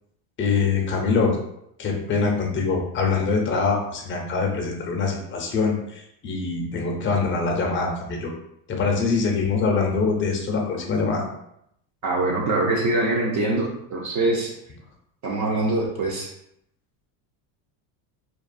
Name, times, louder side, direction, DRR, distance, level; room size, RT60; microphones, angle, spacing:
voice 1, 0.4-1.4 1.8-8.3 8.7-11.3, left 4 dB, 25° left, 1 dB, 0.5 m, -24 dB
voice 2, 12.0-14.5 15.2-16.3, right 2 dB, 40° right, -2 dB, 0.4 m, -23 dB
2.4 x 2.3 x 2.4 m, 0.76 s
supercardioid pair, 105°, 49 cm